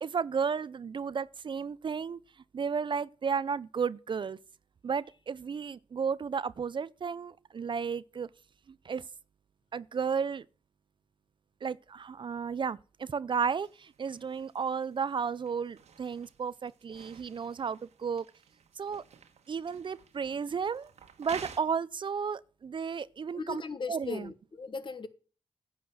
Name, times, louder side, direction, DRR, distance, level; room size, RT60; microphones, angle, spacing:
voice 1, 0.0-2.2 2.5-4.4 4.8-8.3 8.7-9.0 9.7-10.4 11.6-18.3 18.8-19.0 19.5-20.9 21.2-23.6 23.9-24.3, right 6 dB, 45° right, 0.4 m, -33 dB
sound 1, 13.6-21.6, right 7 dB, 80° right, 1.4 m, -52 dB
voice 2, 23.3-25.1, left 4 dB, 45° left, 1.2 m, -38 dB
10.0 x 5.8 x 7.8 m
cardioid pair, 75°, 11 cm